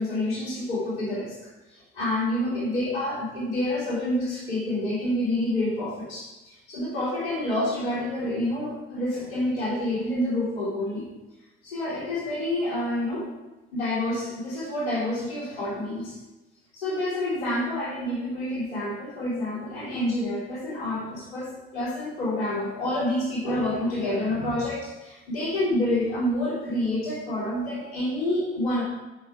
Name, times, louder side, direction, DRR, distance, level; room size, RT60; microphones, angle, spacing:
voice 1, 0.0-1.3 1.7-11.1 11.6-13.3 13.7-16.2 16.7-28.8, left 1 dB, 80° left, -7 dB, 3.5 m, -28 dB
8.0 x 5.9 x 6.2 m, 1.1 s
hypercardioid pair, 45°, 30 cm